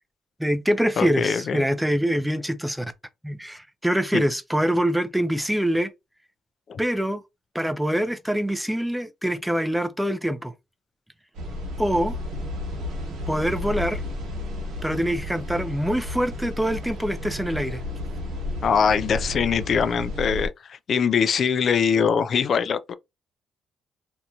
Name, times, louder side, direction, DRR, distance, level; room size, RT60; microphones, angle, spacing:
voice 1, 0.4-2.9 3.2-5.9 6.8-7.2 7.5-10.5 11.8-12.2 13.3-14.0 14.8-17.8, equal, 5° right, 0.5 m, -24 dB
voice 2, 1.0-1.6 4.1-4.2 6.7-6.8 18.6-22.9, left 6 dB, 55° left, 0.3 m, -22 dB
sound 1, 11.3-20.5, left 2 dB, 90° right, 1.2 m, -32 dB
2.8 x 2.6 x 2.3 m
cardioid pair, 90°, 0 cm